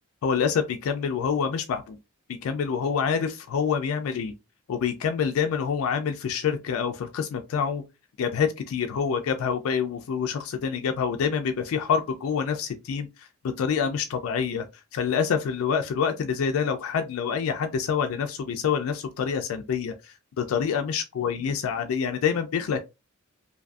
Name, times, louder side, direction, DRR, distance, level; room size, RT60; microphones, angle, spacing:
voice 1, 0.2-2.0 2.4-4.3 4.7-7.8 8.2-13.3 13.6-14.7 14.9-22.8, left 6 dB, 70° left, 0.3 m, -27 dB
2.5 x 2.5 x 2.3 m
head